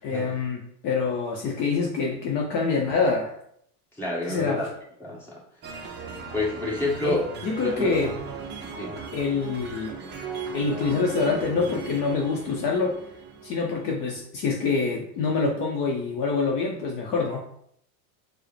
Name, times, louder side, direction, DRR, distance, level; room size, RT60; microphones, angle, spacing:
voice 1, 0.0-3.3 4.3-4.6 7.0-8.2 9.1-9.9 10.5-13.0 13.4-17.5, left 4 dB, 45° left, 0 dB, 0.6 m, -26 dB
voice 2, 3.9-4.7 5.0-5.4 6.3-7.2 7.6-8.1 8.6-9.0, left 2 dB, 5° left, -6 dB, 1.3 m, -29 dB
sound 1, 5.6-14.2, right 5 dB, 25° right, 0.5 m, -38 dB
4.5 x 2.1 x 3.2 m, 0.70 s
supercardioid pair, 115°, 47 cm